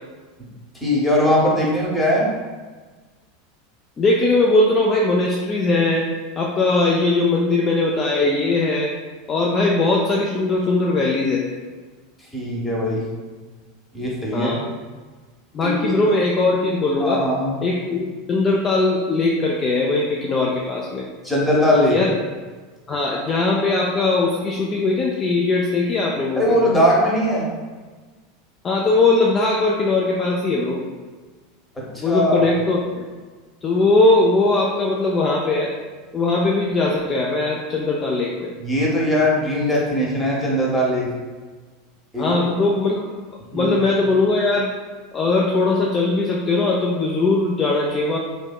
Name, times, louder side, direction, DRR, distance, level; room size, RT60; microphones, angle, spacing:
voice 1, 0.8-2.3 12.3-13.0 13.9-14.6 15.6-15.9 17.0-17.5 21.2-22.0 26.4-27.5 31.9-32.5 38.6-41.1 42.1-42.4 43.5-43.7, equal, 10° left, -4 dB, 0.8 m, -20 dB
voice 2, 4.0-6.1 6.4-8.9 9.3-11.4 14.3-14.6 15.5-17.2 17.6-21.1 21.9-22.1 22.9-26.5 28.6-30.8 32.0-32.8 33.6-35.7 36.1-38.5 42.2-43.0 43.5-44.7 45.1-48.2, left 2 dB, 30° left, -3 dB, 0.3 m, -20 dB
2.6 x 2.1 x 2.3 m, 1.4 s
hypercardioid pair, 85°, 0 cm